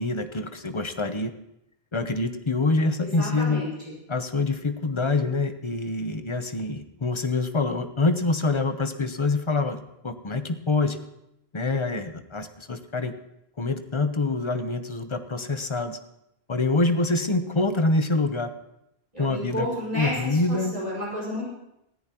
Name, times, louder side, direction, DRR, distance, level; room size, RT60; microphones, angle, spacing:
voice 1, 0.0-1.3 1.9-3.7 4.1-9.8 10.0-11.0 11.5-13.1 13.6-16.0 16.5-18.5 19.2-19.7 19.9-20.8, left 3 dB, 30° left, 8 dB, 0.9 m, -25 dB
voice 2, 3.0-3.9 19.1-21.4, equal, 35° right, -6 dB, 5.2 m, -31 dB
19.0 x 13.5 x 3.0 m, 0.83 s
omnidirectional pair, 1.1 m